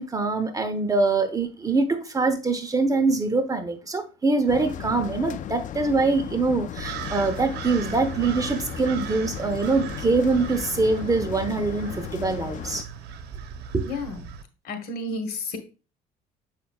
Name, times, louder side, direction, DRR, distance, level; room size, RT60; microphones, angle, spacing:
voice 1, 0.0-12.9 13.7-13.8, right 3 dB, 20° right, 1.0 m, -24 dB
sound 1, 4.5-12.8, left 11 dB, 50° left, 0.4 m, -36 dB
sound 2, 6.8-14.4, right 7 dB, 75° right, 0.9 m, -38 dB
voice 2, 13.8-14.2 14.6-15.6, left 2 dB, 65° left, 1.7 m, -31 dB
7.1 x 5.7 x 2.4 m
cardioid pair, 110°, 17 cm